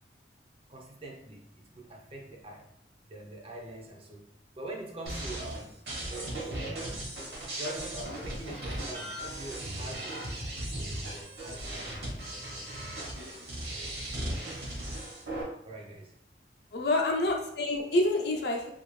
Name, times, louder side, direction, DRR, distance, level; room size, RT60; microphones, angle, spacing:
voice 1, 0.7-2.7 3.1-4.2 4.6-5.7 6.1-7.1 7.6-12.2 15.6-16.1, right 1 dB, 30° right, 1 dB, 0.4 m, -44 dB
sound 1, 5.1-15.4, right 1 dB, 60° right, 1.0 m, -37 dB
voice 2, 16.7-18.7, left 2 dB, 65° left, 2 dB, 0.6 m, -27 dB
2.6 x 2.4 x 3.1 m, 0.77 s
head